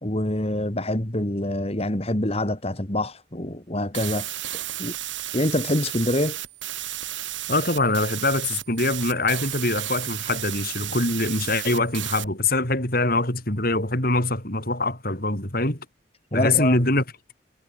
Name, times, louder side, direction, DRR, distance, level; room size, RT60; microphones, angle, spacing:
voice 1, 0.0-5.0 5.3-6.4 16.3-16.8, left 1 dB, 30° left, 2.5 m, -26 dB
sound 1, 3.9-12.3, right 13 dB, 75° right, 5.1 m, -33 dB
voice 2, 7.5-15.8 16.3-17.0, left 2 dB, 50° left, 6.8 m, -23 dB
head